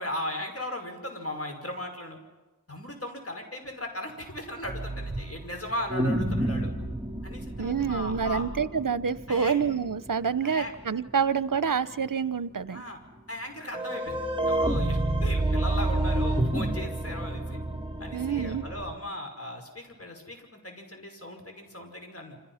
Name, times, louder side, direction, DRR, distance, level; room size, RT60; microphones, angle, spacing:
voice 1, 0.0-2.2 2.7-6.7 7.2-8.4 9.3-9.6 10.4-10.7 12.7-13.0 13.3-17.6 18.0-22.4, left 1 dB, 40° left, 3 dB, 5.8 m, -37 dB
sound 1, 4.6-12.1 12.4-12.5 13.1-13.2 13.7-18.9, right 1 dB, 15° right, 2.9 m, -30 dB
voice 2, 7.6-12.8 18.1-18.6, right 6 dB, 60° right, 15 dB, 0.9 m, -27 dB
28.5 x 26.5 x 5.8 m, 1.1 s
wide cardioid pair, 55°, 36 cm